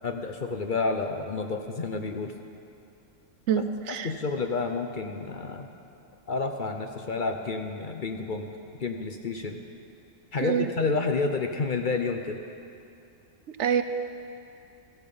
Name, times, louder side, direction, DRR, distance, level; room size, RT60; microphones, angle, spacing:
voice 1, 0.0-2.3 4.0-5.7 6.3-8.5 8.8-9.6 10.3-12.4, left 4 dB, 45° left, 5 dB, 0.8 m, -30 dB
voice 2, 3.5-4.1 10.4-10.7 13.5-13.8, right 8 dB, 70° right, 10 dB, 0.9 m, -26 dB
14.5 x 13.5 x 5.4 m, 2.6 s
omnidirectional pair, 1.3 m